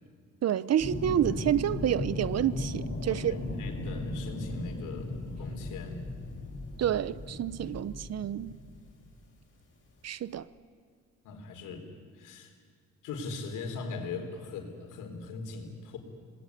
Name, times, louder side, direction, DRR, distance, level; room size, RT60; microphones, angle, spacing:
voice 1, 0.4-3.4 6.8-8.6 10.0-10.5, right 10 dB, 55° right, 0.9 m, -29 dB
sound 1, 0.8-9.0 10.4-10.5, left 2 dB, 40° left, 6.8 m, -37 dB
voice 2, 3.1-6.0 11.2-12.5 13.0-16.0, left 4 dB, 90° left, 4.1 m, -40 dB
27.0 x 20.0 x 9.4 m
cardioid pair, 90°, 30 cm